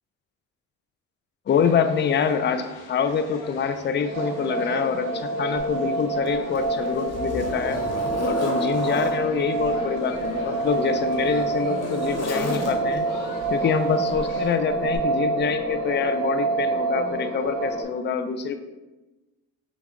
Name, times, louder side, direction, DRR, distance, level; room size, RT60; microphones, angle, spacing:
sound 1, 1.5-14.6, left 4 dB, 80° left, 0.7 m, -44 dB
voice 1, 1.5-7.8 8.2-13.1 13.5-18.6, left 6 dB, 35° left, 9 dB, 0.4 m, -25 dB
sound 2, 4.1-17.8, right 3 dB, 55° right, 1.1 m, -27 dB
Zipper (clothing), 5.6-5.7 6.3-9.2 10.2-13.1 14.1-14.3 14.9-15.0, left 2 dB, 55° left, 1.0 m, -33 dB
5.7 x 2.3 x 3.6 m, 1.1 s
supercardioid pair, 70°, 31 cm